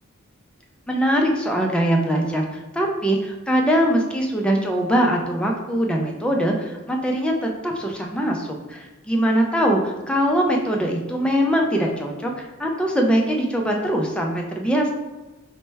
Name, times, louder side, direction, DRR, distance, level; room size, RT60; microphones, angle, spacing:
voice 1, 0.9-14.9, equal, 5° left, 0 dB, 0.3 m, -22 dB
4.2 x 2.1 x 3.3 m, 1.1 s
head